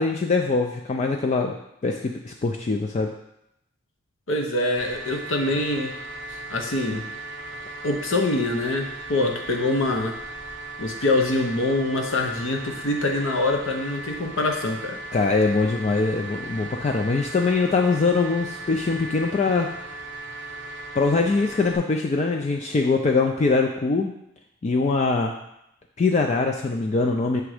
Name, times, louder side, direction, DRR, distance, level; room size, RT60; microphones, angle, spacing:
voice 1, 0.0-1.5 1.8-3.1 15.1-19.7 21.0-24.1 24.6-25.3 26.0-27.4, left 3 dB, 35° left, 2 dB, 0.3 m, -22 dB
voice 2, 4.3-6.0 6.3-7.0 7.8-10.2 10.8-15.0, left 2 dB, 70° left, 3 dB, 0.8 m, -24 dB
sound 1, 4.8-21.8, right 2 dB, 60° right, 0.8 m, -37 dB
6.1 x 3.4 x 4.9 m, 0.81 s
head